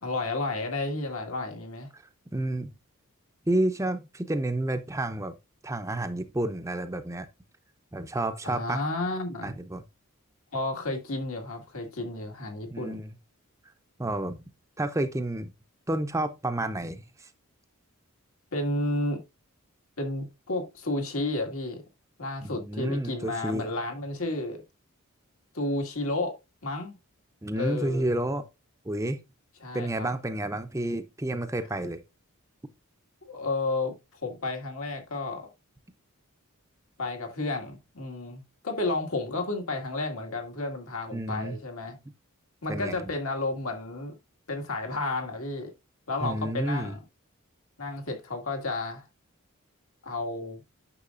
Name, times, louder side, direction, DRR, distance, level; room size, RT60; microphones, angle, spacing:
voice 1, 0.0-1.9 8.4-9.5 10.5-13.0 18.5-19.2 20.0-21.8 22.2-24.6 25.5-26.4 26.6-27.0 27.6-28.1 29.6-30.1 33.3-33.9 34.2-35.5 37.0-42.0 42.6-44.1 44.5-45.7 46.1-47.0 47.8-49.1 50.0-50.6, left 2 dB, 75° left, 2.0 m, -32 dB
voice 2, 2.3-2.7 3.5-5.3 5.6-7.3 7.9-8.8 9.4-9.8 12.7-13.1 14.0-14.4 14.8-15.5 15.9-17.3 22.4-23.7 27.4-28.4 28.9-29.2 29.7-32.0 41.1-41.6 42.7-43.0 46.2-46.9, right 1 dB, 15° right, 0.6 m, -30 dB
9.8 x 6.3 x 2.5 m
head